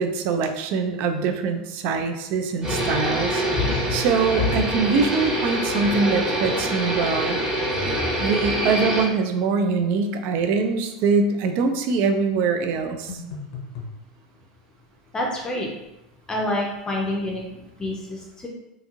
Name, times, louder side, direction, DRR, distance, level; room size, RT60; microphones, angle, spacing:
voice 1, 0.0-3.4 3.9-7.4 8.2-13.2, right 4 dB, 55° right, 7 dB, 0.4 m, -23 dB
sound 1, 2.6-9.0, equal, 20° right, 0.9 m, -25 dB
sound 2, 7.7-8.6 13.1-14.0, left 1 dB, 75° left, 0.7 m, -34 dB
voice 2, 15.1-15.7 16.3-17.4 17.8-18.5, left 1 dB, 20° left, -1 dB, 0.5 m, -27 dB
2.9 x 2.5 x 2.4 m, 0.90 s
supercardioid pair, 110°, 4 cm